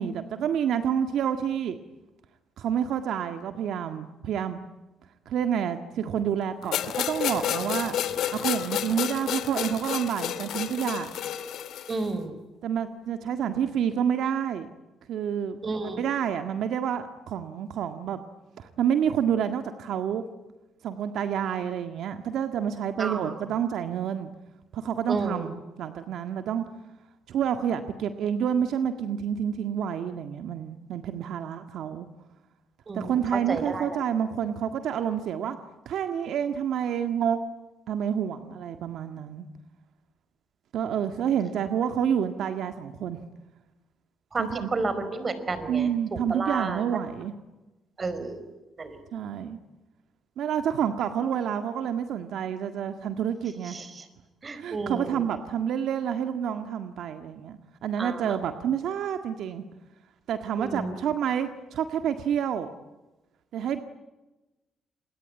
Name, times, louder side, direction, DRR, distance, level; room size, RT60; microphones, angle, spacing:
voice 1, 0.0-1.8 2.6-4.6 5.3-8.0 8.3-11.1 12.6-14.7 15.1-18.2 18.6-20.2 20.8-24.3 24.7-26.6 27.3-32.1 32.9-35.6 35.9-37.4 37.9-39.5 40.7-43.2 44.4-44.7 45.7-47.3 49.1-49.6 50.4-53.8 54.6-59.6 60.3-62.7 63.5-63.8, right 8 dB, 75° right, 8 dB, 1.8 m, -28 dB
sound 1, 6.7-12.1, left 10 dB, 75° left, 2.6 m, -30 dB
voice 2, 11.9-12.4 15.6-16.0 23.0-23.1 25.1-25.4 32.9-33.1 33.5-33.9 44.3-46.8 48.0-48.4 48.8-49.0 54.4-55.2 58.0-58.2 60.6-60.9, right 3 dB, 35° right, 12 dB, 4.8 m, -31 dB
28.5 x 22.0 x 9.6 m, 1.1 s
cardioid pair, 90°, 0 cm